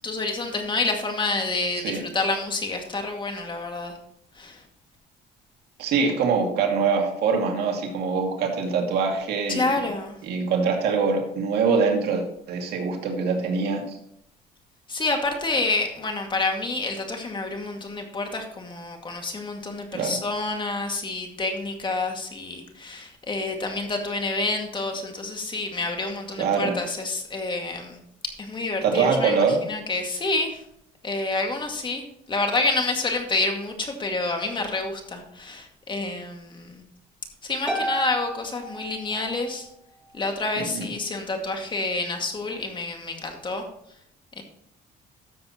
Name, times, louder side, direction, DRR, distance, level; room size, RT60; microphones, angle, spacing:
voice 1, 0.0-3.9 4.4-4.6 9.5-10.2 14.9-28.0 28.4-30.6 31.0-36.8 37.4-39.7 40.1-43.6 44.4-44.5, left 3 dB, 30° left, 3 dB, 2.1 m, -28 dB
voice 2, 5.8-9.8 10.2-14.0 19.9-20.2 26.4-26.7 28.8-29.6 40.6-40.9, right 5 dB, 70° right, 2 dB, 2.3 m, -24 dB
Harp, 37.7-39.5, right 1 dB, 5° right, 2.6 m, -31 dB
13.0 x 7.4 x 3.0 m, 0.72 s
cardioid pair, 110°, 17 cm